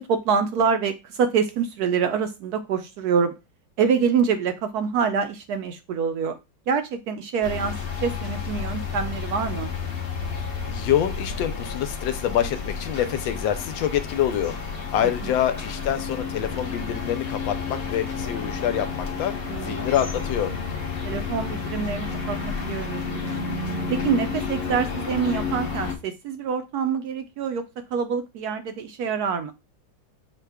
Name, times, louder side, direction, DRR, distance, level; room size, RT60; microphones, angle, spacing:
voice 1, 0.0-3.3 3.8-6.4 6.7-7.7 8.0-9.7 15.0-15.3 19.5-19.9 21.0-23.4 23.9-27.6 27.9-29.5, right 6 dB, 75° right, 8 dB, 0.9 m, -26 dB
Urban Atmos leaves lawnmover in distance, 7.4-26.0, left 5 dB, 45° left, 0.8 m, -31 dB
voice 2, 10.7-20.5, left 10 dB, 85° left, 9 dB, 1.4 m, -26 dB
6.4 x 2.2 x 3.3 m, 0.25 s
omnidirectional pair, 2.1 m